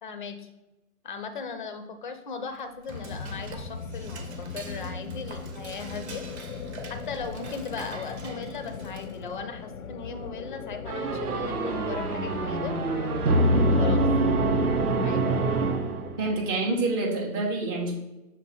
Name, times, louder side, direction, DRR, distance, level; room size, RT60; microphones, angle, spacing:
voice 1, 0.0-0.5 1.0-6.2 6.9-12.7 13.4-14.0 15.0-15.3, left 5 dB, 35° left, 8 dB, 0.5 m, -38 dB
Dishes pots and pans / Cutlery silverware, 2.5-9.4, right 4 dB, 50° right, 0.9 m, -45 dB
sound 1, 2.9-14.3, left 5 dB, 85° left, 0.5 m, -39 dB
sound 2, 10.9-16.4, right 2 dB, 85° right, 0.7 m, -25 dB
voice 2, 16.2-17.9, right 2 dB, 15° right, -2 dB, 0.5 m, -27 dB
6.2 x 2.1 x 3.9 m, 1.0 s
figure-of-eight pair, 130°, 43 cm